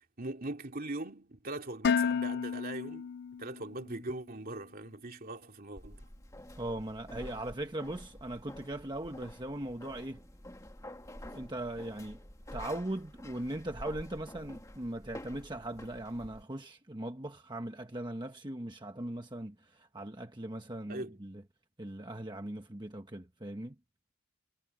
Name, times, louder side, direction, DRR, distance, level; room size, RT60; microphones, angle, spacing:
voice 1, 0.0-6.1 20.9-21.2, right 2 dB, 45° right, 2.9 m, -41 dB
Dishes pots and pans, 1.8-3.9, left 6 dB, 50° left, 0.4 m, -31 dB
sound 1, 5.8-16.4, left 1 dB, 15° left, 2.1 m, -49 dB
voice 2, 6.6-10.2 11.3-12.2 12.5-21.4 21.8-23.7, right 1 dB, 20° right, 1.2 m, -39 dB
head